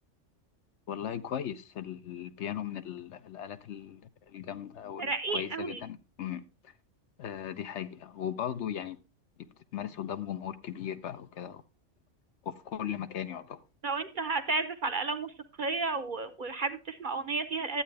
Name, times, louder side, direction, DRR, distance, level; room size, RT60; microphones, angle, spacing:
voice 1, 0.9-6.7 7.2-9.0 9.7-11.6 12.4-13.6, left 9 dB, 70° left, 0.9 m, -38 dB
voice 2, 5.0-5.8 13.8-15.3 15.6-17.8, right 3 dB, 50° right, 0.7 m, -32 dB
11.5 x 8.5 x 3.3 m
omnidirectional pair, 1.3 m